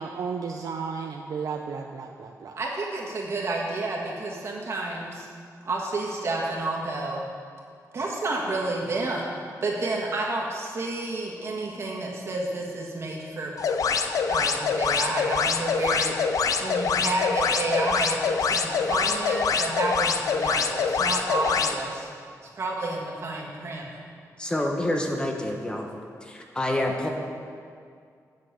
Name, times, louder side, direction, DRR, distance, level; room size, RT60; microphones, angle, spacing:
voice 1, 0.0-2.6, right 5 dB, 70° right, 2 dB, 0.5 m, -33 dB
voice 2, 2.6-5.3 5.6-7.3 7.9-13.5 14.3-16.1 16.6-22.1 22.4-23.9, right 2 dB, 45° right, -2 dB, 1.6 m, -30 dB
sound 1, 13.6-21.7, left 5 dB, 65° left, 0.5 m, -25 dB
voice 3, 24.4-25.9 26.2-27.1, left 1 dB, 15° left, 1 dB, 1.0 m, -27 dB
8.2 x 6.3 x 7.6 m, 2.2 s
wide cardioid pair, 165°, 6 cm